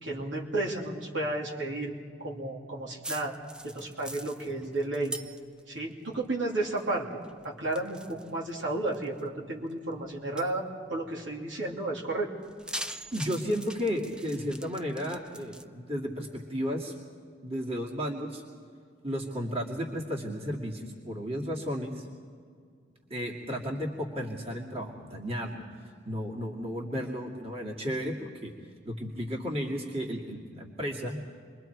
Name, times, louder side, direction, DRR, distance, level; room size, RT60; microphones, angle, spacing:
voice 1, 0.0-1.9 2.2-3.4 3.6-5.2 5.7-7.0 7.4-10.6 10.9-12.3, right 2 dB, 80° right, -2 dB, 3.0 m, -32 dB
sound 1, 3.0-5.8 6.1-6.9 7.2-9.2 9.7-9.8 10.4-10.6 12.4-15.6, right 1 dB, 5° right, 0.5 m, -42 dB
voice 2, 13.1-16.9 17.4-18.4 19.0-22.1 23.1-25.6 26.0-28.5 28.8-31.2, equal, 30° right, -2 dB, 2.3 m, -33 dB
27.5 x 22.5 x 4.6 m, 2.1 s
head